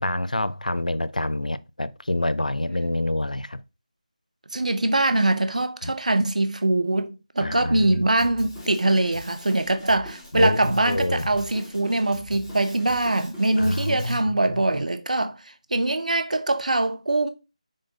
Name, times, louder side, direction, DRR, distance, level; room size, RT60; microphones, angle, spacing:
voice 1, 0.0-3.6 5.8-5.9 7.4-8.0 10.3-11.3 13.6-14.8, left 1 dB, 90° left, 0.6 m, -27 dB
voice 2, 4.5-7.1 7.3-15.4 15.7-17.3, right 2 dB, 70° right, 1.1 m, -23 dB
Drum kit, 8.2-14.2, equal, 5° right, 3.1 m, -42 dB
6.6 x 4.1 x 4.0 m
figure-of-eight pair, 165°, 4 cm